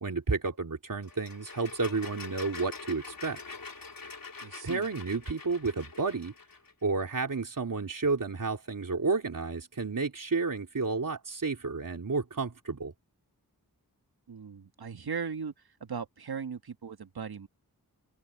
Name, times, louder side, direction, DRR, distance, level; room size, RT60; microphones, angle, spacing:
voice 1, 0.0-3.4 4.6-6.3 6.8-12.9, right 4 dB, 60° right, 3.2 m, -31 dB
sound 1, 1.0-6.7, left 4 dB, 65° left, 4.1 m, -45 dB
voice 2, 4.4-4.8 14.3-15.5 15.8-17.5, right 6 dB, 80° right, 1.6 m, -38 dB
open air
wide cardioid pair, 55°, 37 cm